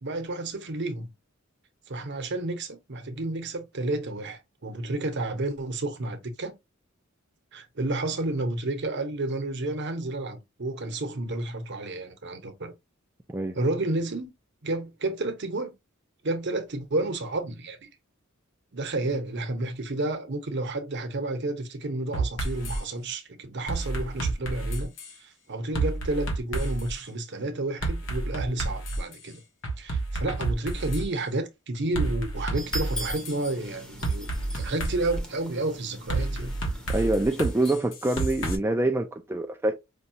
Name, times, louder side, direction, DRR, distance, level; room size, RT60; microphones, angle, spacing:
voice 1, 0.0-1.1 1.9-6.5 7.5-12.7 13.5-14.3 14.6-15.7 16.2-17.9 18.7-29.4 29.8-34.3 34.5-36.5, right 2 dB, 60° right, 0.9 m, -31 dB
sound 1, 22.1-22.8 23.7-25.1 25.7-26.9 27.8-29.1 29.6-31.1 32.0-33.3 34.0-35.2 36.1-38.6, right 2 dB, 65° left, 1.3 m, -29 dB
sound 2, 32.6-37.8, equal, 5° left, 0.8 m, -41 dB
voice 2, 36.9-39.7, right 2 dB, 10° right, 0.4 m, -25 dB
5.2 x 2.3 x 2.8 m
head